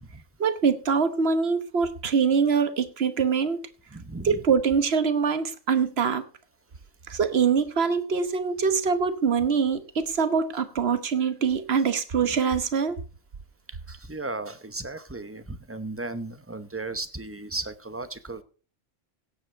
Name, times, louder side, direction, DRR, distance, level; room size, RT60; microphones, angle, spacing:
voice 1, 0.4-3.7 4.2-6.2 7.1-13.0, right 6 dB, 55° right, 1.3 m, -24 dB
voice 2, 3.9-4.4 13.7-18.4, right 2 dB, 10° right, 0.8 m, -36 dB
16.5 x 7.8 x 4.5 m
omnidirectional pair, 1.3 m